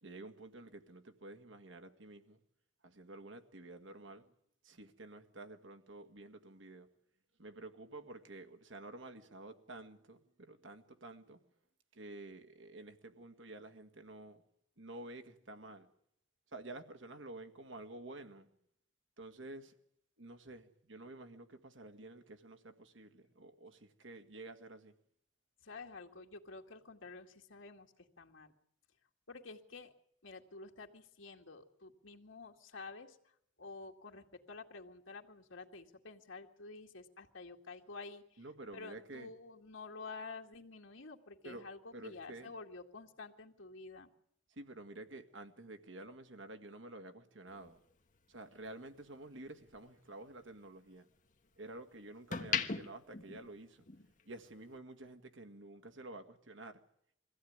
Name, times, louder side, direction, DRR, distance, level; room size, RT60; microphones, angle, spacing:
voice 1, 0.0-2.4 2.8-4.3 4.6-6.9 7.4-11.4 11.9-14.4 14.8-15.9 16.5-18.5 19.2-19.7 20.2-24.9 38.4-39.3 41.4-41.7 41.9-42.5 44.5-47.8 48.3-51.1 51.6-53.8 54.2-56.8, right 2 dB, 80° right, 2.0 m, -50 dB
voice 2, 25.6-28.5 29.3-29.9 30.2-33.2 33.6-38.4 38.7-44.1, left 3 dB, 90° left, 2.3 m, -50 dB
sound 1, 47.5-49.8 50.2-51.6 52.1-54.2 54.5-54.8, left 6 dB, 40° left, 1.4 m, -40 dB
23.0 x 16.0 x 9.6 m
head